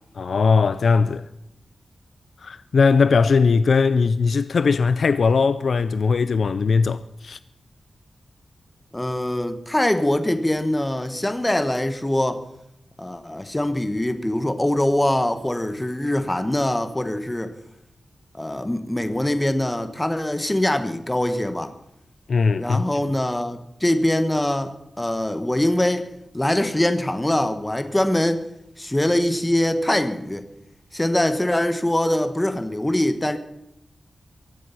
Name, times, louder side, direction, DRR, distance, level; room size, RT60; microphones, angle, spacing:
voice 1, 0.2-1.3 2.4-7.4 22.3-22.8, left 5 dB, 60° left, 0.5 m, -19 dB
voice 2, 8.9-12.4 13.0-17.5 18.3-21.7 22.6-26.1 26.3-28.5 28.8-30.4 30.9-33.4, left 1 dB, 10° left, 1.1 m, -23 dB
23.0 x 7.7 x 6.9 m
wide cardioid pair, 170°, 0 cm